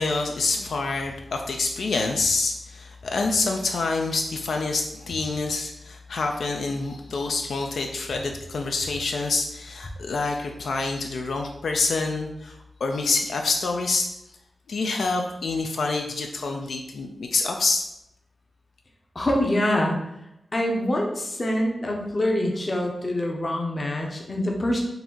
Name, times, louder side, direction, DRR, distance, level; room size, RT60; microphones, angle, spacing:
voice 1, 0.0-14.1 14.7-17.8, left 3 dB, 80° left, 3 dB, 0.4 m, -27 dB
voice 2, 19.1-20.0 20.5-24.8, left 1 dB, 30° left, 0 dB, 0.7 m, -25 dB
3.9 x 2.6 x 4.4 m, 0.84 s
wide cardioid pair, 165°, 0 cm